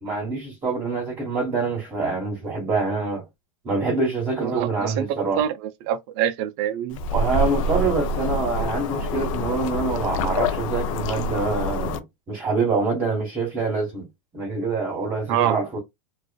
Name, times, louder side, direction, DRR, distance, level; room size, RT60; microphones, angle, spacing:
voice 1, 0.0-3.2 3.6-5.4 7.1-14.1 14.3-15.8, right 4 dB, 25° right, 1.2 m, -25 dB
voice 2, 4.4-5.1 5.4-7.0 15.3-15.6, right 10 dB, 50° right, 0.5 m, -25 dB
sound 1, 6.9-12.0, left 2 dB, 70° left, 0.5 m, -26 dB
2.4 x 2.4 x 2.2 m
supercardioid pair, 130°, 18 cm